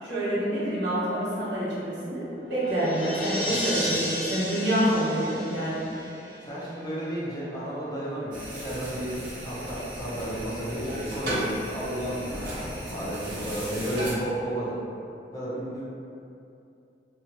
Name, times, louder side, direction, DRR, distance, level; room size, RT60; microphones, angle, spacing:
voice 1, 0.0-6.1, right 1 dB, 80° right, -8 dB, 0.9 m, -27 dB
sound 1, 2.0-6.5, equal, 10° right, 1.3 m, -33 dB
voice 2, 3.4-4.0 6.4-9.1 9.4-14.8 15.3-15.8, equal, 20° left, -8 dB, 0.5 m, -33 dB
sound 2, 8.3-14.1, right 1 dB, 45° right, 0.9 m, -35 dB
2.8 x 2.3 x 2.7 m, 2.6 s
head